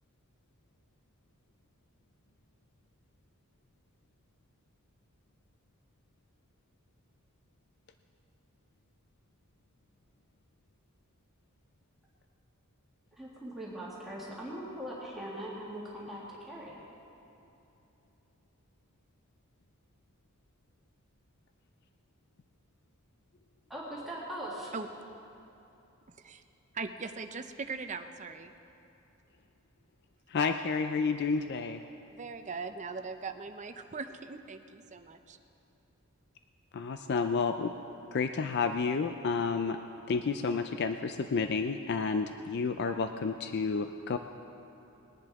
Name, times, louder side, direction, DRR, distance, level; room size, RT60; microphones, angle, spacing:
voice 1, 13.2-16.8 23.7-24.7, right 1 dB, ahead, -7 dB, 2.0 m, -41 dB
voice 2, 26.7-28.5 32.1-35.4, right 4 dB, 35° right, 7 dB, 0.6 m, -40 dB
voice 3, 30.3-31.8 36.7-37.7 38.1-39.8 40.1-44.2, left 4 dB, 50° left, 7 dB, 0.4 m, -30 dB
20.5 x 10.5 x 3.6 m, 3.0 s
head